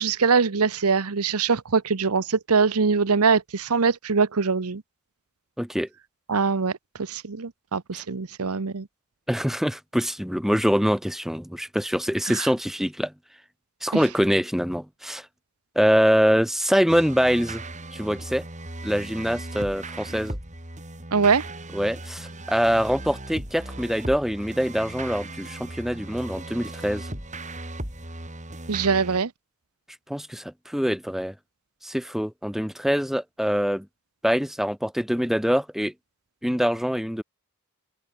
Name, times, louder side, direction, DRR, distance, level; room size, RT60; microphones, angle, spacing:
voice 1, 0.0-4.8 6.3-6.7 7.0-8.9 12.3-12.5 13.9-14.0 21.1-21.5 28.7-29.3, right 5 dB, 85° right, 0.9 m, -23 dB
voice 2, 5.6-5.9 7.9-8.0 9.3-13.1 13.8-15.3 15.8-17.6 17.9-18.4 18.8-20.4 21.7-27.1 30.1-31.3 31.8-33.9 34.2-35.9 36.4-37.2, equal, ahead, 2.1 m, -24 dB
sound 1, 16.9-29.2, right 1 dB, 35° right, 7.3 m, -37 dB
open air
head